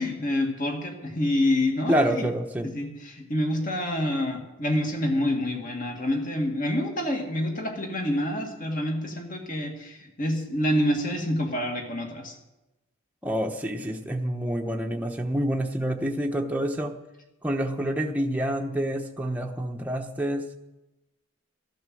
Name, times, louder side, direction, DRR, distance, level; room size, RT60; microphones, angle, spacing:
voice 1, 0.0-2.2 2.6-12.3, left 1 dB, 40° left, 3 dB, 2.3 m, -27 dB
voice 2, 1.9-2.7 13.2-16.9 17.4-20.4, right 1 dB, 5° right, 2 dB, 1.0 m, -27 dB
13.0 x 11.5 x 7.7 m, 0.97 s
head